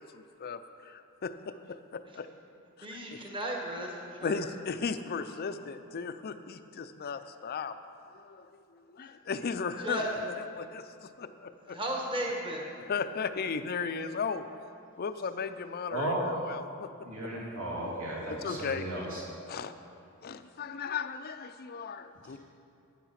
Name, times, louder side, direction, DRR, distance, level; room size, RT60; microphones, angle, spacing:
voice 1, 0.0-2.3 2.8-2.9 3.1-3.2 4.2-7.7 8.1-11.8 12.9-14.5 15.0-16.9 17.2-17.4 18.3-19.1 19.5-19.7 20.2-22.4, left 5 dB, 45° left, 10 dB, 0.4 m, -36 dB
voice 2, 2.8-4.4 7.0-7.1 9.8-10.3 11.7-12.7, right 1 dB, 25° right, -1 dB, 1.2 m, -35 dB
voice 3, 15.9-16.2 17.1-19.2, right 1 dB, 70° right, -4 dB, 2.9 m, -35 dB
11.5 x 9.2 x 5.8 m, 2.6 s
head